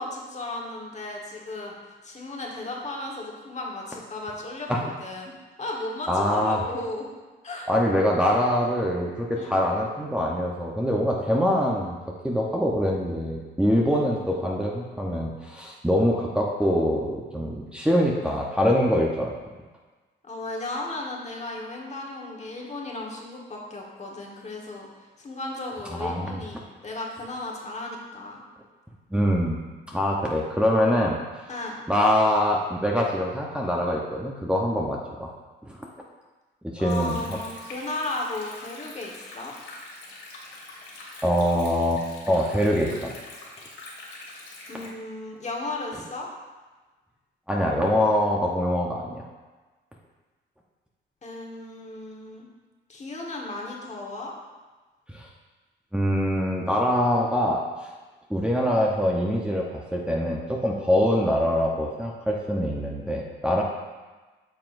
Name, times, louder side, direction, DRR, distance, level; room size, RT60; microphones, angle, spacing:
voice 1, 0.0-1.7 2.0-5.3 5.6-7.1 7.4-7.7 9.4-9.5 14.2-14.4 20.2-24.9 25.2-28.4 31.5-31.8 36.8-39.5 44.7-46.3 51.2-52.5 52.9-54.3, left 2 dB, 35° left, -1 dB, 1.4 m, -35 dB
voice 2, 6.1-6.6 7.7-11.9 12.2-19.3 25.9-26.4 29.1-29.6 29.9-31.2 31.9-35.3 35.6-35.9 36.6-37.4 41.2-43.1 47.5-49.2 55.1-55.3 55.9-57.6 58.3-63.6, equal, 5° right, -3 dB, 0.9 m, -24 dB
Stream, 36.9-44.9, left 2 dB, 75° left, 2.1 m, -44 dB
8.8 x 5.8 x 2.6 m, 1.3 s
cardioid pair, 90°, 20 cm